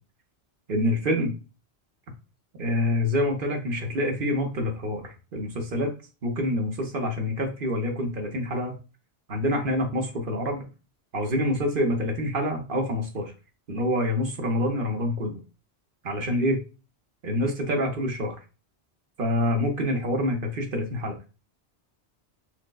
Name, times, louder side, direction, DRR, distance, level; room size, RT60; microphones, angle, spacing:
voice 1, 0.7-1.3 2.6-5.9 6.2-8.8 9.3-10.7 11.1-13.3 13.7-15.4 16.0-16.6 17.2-18.4 19.2-21.3, left 1 dB, 55° right, 3 dB, 1.0 m, -26 dB
6.1 x 2.1 x 2.3 m, 0.32 s
omnidirectional pair, 1.1 m